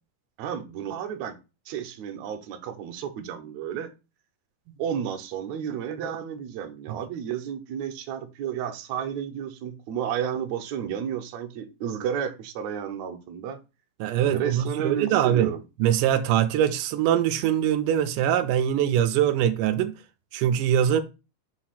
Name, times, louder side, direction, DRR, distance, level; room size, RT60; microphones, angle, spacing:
voice 1, 0.4-1.4 1.7-3.9 4.8-13.6 14.2-15.6, right 8 dB, 70° right, 1.9 m, -32 dB
voice 2, 14.0-15.5 15.8-19.9 20.3-21.0, right 10 dB, 85° right, 2.1 m, -23 dB
6.5 x 2.8 x 5.7 m
omnidirectional pair, 3.7 m